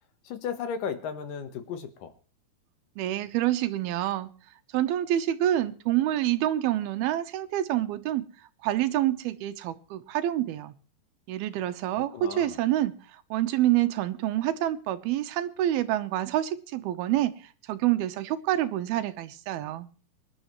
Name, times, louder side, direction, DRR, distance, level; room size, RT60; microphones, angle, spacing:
voice 1, 0.2-2.1 12.1-12.6, left 7 dB, 65° left, 9 dB, 2.7 m, -35 dB
voice 2, 3.0-4.3 4.7-10.7 11.3-19.9, right 13 dB, 80° right, 11 dB, 2.8 m, -27 dB
25.0 x 11.5 x 3.1 m, 0.40 s
omnidirectional pair, 4.4 m